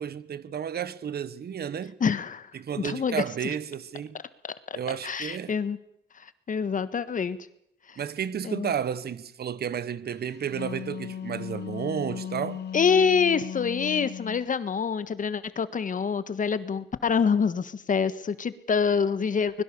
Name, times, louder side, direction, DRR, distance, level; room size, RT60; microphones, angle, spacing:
voice 1, 0.0-2.0 2.5-4.2 4.7-5.5 8.0-12.6, right 8 dB, 55° right, 1.3 m, -32 dB
voice 2, 2.0-2.5 2.8-3.5 4.7-4.8 5.0-5.8 6.5-7.4 8.4-8.7 12.7-19.6, left 6 dB, 40° left, 1.4 m, -26 dB
Wind instrument woodwind instrument, 10.3-14.5, left 8 dB, 55° left, 1.2 m, -37 dB
24.5 x 21.5 x 6.9 m
cardioid pair, 90°, 20 cm